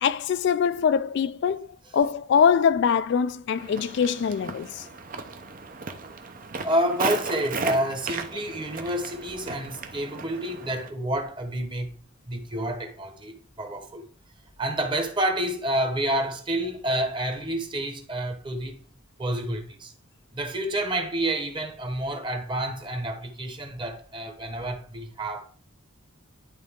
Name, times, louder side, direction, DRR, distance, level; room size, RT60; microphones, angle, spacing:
voice 1, 0.0-1.7 1.9-4.8, left 7 dB, 60° left, 0.3 m, -23 dB
Walk footsteps, 3.5-10.9, right 4 dB, 40° right, 0.7 m, -36 dB
voice 2, 6.6-11.9 12.3-14.0 14.6-18.7 19.2-19.9 20.3-25.4, right 1 dB, 25° right, 1.1 m, -29 dB
11.0 x 3.9 x 3.6 m
head